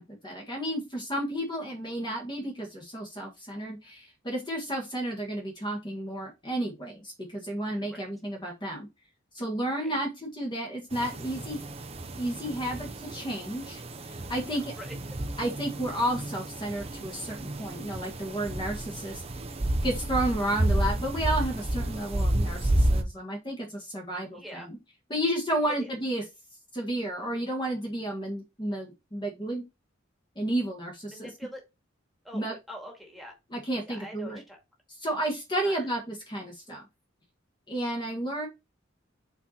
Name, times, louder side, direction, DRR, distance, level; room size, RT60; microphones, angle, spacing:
voice 1, 0.0-8.9 9.3-11.6 12.2-14.7 15.4-19.2 19.8-24.8 25.1-26.2 26.7-29.6 30.4-31.3 32.3-32.5 33.5-34.4 35.0-36.8 37.7-38.5, right 1 dB, 20° left, 0 dB, 1.8 m, -32 dB
sound 1, 10.9-23.0, right 1 dB, 30° right, 0.9 m, -31 dB
voice 2, 14.5-15.0 24.3-24.7 25.7-25.9 31.1-31.6 32.2-33.3 33.9-34.6 35.6-35.9, equal, ahead, 0 dB, 2.1 m, -44 dB
5.7 x 4.6 x 4.4 m, 0.24 s
head